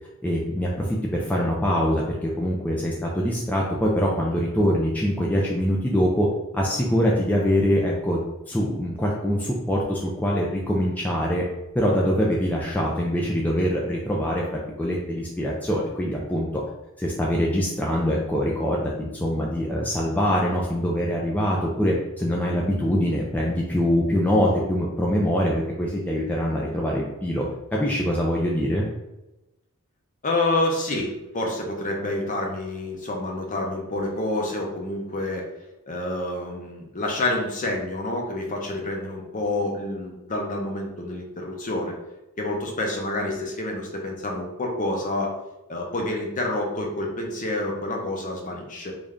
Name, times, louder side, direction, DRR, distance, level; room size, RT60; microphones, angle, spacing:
voice 1, 0.2-6.3 6.5-11.5 11.7-16.5 17.0-27.4 27.7-28.8, equal, 5° left, -4 dB, 0.4 m, -24 dB
voice 2, 30.2-35.4 35.9-42.0 42.4-45.3 45.7-48.9, left 2 dB, 35° left, 1 dB, 0.7 m, -28 dB
3.2 x 2.6 x 3.6 m, 0.97 s
head